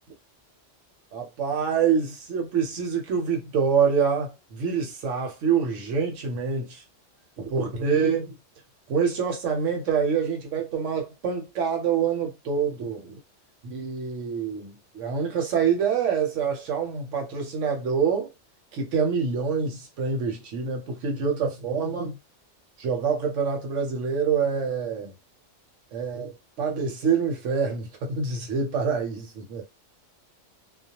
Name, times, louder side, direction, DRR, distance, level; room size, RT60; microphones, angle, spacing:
voice 1, 1.1-6.8 7.4-8.3 8.9-13.1 13.6-18.3 18.7-22.2 22.8-25.1 25.9-29.6, right 6 dB, 75° right, 1.1 m, -26 dB
2.2 x 2.2 x 2.8 m
omnidirectional pair, 1.3 m